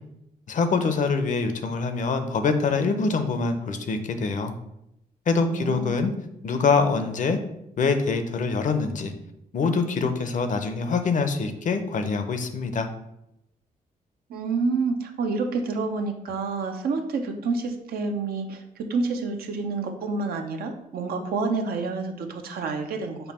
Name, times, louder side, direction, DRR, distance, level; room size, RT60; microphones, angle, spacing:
voice 1, 0.5-4.5 5.3-6.1 6.4-7.4 7.8-9.1 9.5-12.9, left 4 dB, 55° left, 8 dB, 0.6 m, -24 dB
voice 2, 5.3-6.0 14.3-23.2, right 4 dB, 80° right, 5 dB, 0.6 m, -28 dB
5.4 x 2.2 x 4.2 m, 0.82 s
cardioid pair, 75°, 16 cm